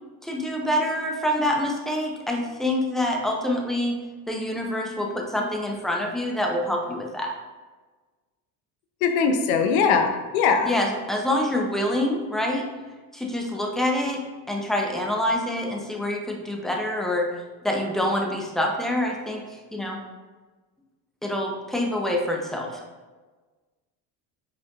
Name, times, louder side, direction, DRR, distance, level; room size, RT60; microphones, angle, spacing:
voice 1, 0.2-4.0 4.3-7.3 10.6-12.7 13.1-14.2 14.5-17.3 17.6-20.0 21.2-22.8, left 1 dB, ahead, 0 dB, 0.6 m, -26 dB
voice 2, 9.0-10.7, left 5 dB, 80° left, 6 dB, 0.8 m, -21 dB
5.0 x 4.4 x 2.4 m, 1.3 s
supercardioid pair, 100°, 42 cm